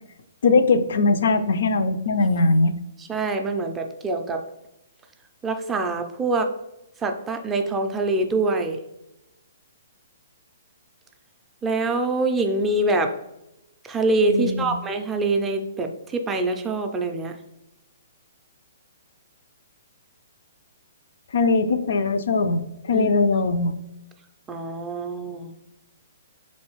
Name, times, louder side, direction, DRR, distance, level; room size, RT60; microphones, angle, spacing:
voice 1, 0.4-2.7 14.3-14.7 21.3-23.7, left 3 dB, 70° left, 9 dB, 0.3 m, -20 dB
voice 2, 3.1-4.4 5.4-6.5 7.0-8.8 11.6-13.1 13.9-17.3 22.9-23.1 24.5-25.5, right 2 dB, 10° right, 5 dB, 0.3 m, -24 dB
4.0 x 3.1 x 3.0 m, 0.89 s
hypercardioid pair, 160°, 0 cm